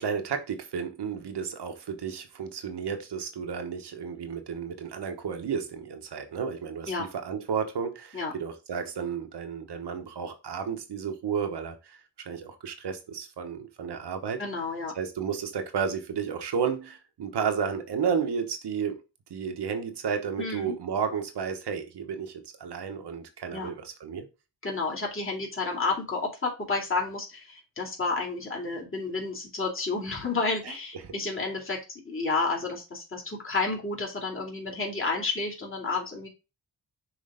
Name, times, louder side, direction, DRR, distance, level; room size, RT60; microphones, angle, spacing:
voice 1, 0.0-14.4 14.9-19.0 19.3-24.3 30.6-30.7 31.0-31.1, right 6 dB, 85° right, 1.2 m, -32 dB
voice 2, 14.4-14.9 20.4-20.7 23.5-23.7 24.6-36.3, left 3 dB, 30° left, 2.5 m, -31 dB
6.3 x 3.3 x 5.0 m
cardioid pair, 70°, 40 cm